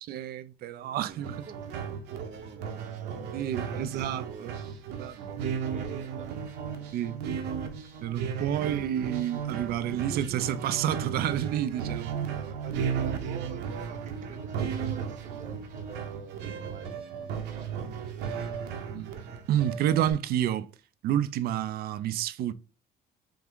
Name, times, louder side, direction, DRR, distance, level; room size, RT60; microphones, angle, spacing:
voice 1, 0.0-1.3 3.3-4.5 5.0-5.2 6.9-7.2 8.0-12.2 18.9-19.1 19.5-20.7 21.0-22.5, right 11 dB, 65° right, 0.4 m, -29 dB
voice 2, 0.8-6.5 8.3-8.8 12.2-19.0, right 6 dB, 45° right, 0.8 m, -48 dB
sound 1, 1.1-20.1, right 7 dB, 85° right, 0.8 m, -35 dB
3.5 x 3.5 x 3.6 m
cardioid pair, 110°, 17 cm